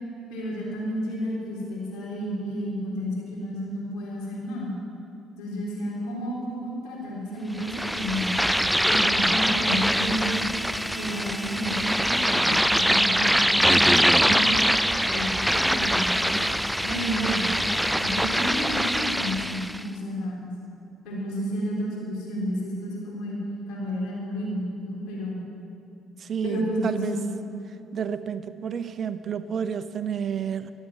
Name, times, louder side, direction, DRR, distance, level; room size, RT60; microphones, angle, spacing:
voice 1, 0.3-4.8 5.4-8.3 8.8-10.5 10.9-14.7 15.0-16.4 16.8-17.5 18.0-20.5 21.0-23.4 23.7-25.4 26.4-27.3, equal, 80° left, -5 dB, 3.6 m, -31 dB
sound 1, 7.6-19.8, equal, ahead, 0.3 m, -23 dB
voice 2, 26.2-27.2 27.9-30.7, right 7 dB, 50° right, 12 dB, 0.7 m, -30 dB
13.0 x 8.3 x 9.2 m, 2.6 s
supercardioid pair, 75°, 0 cm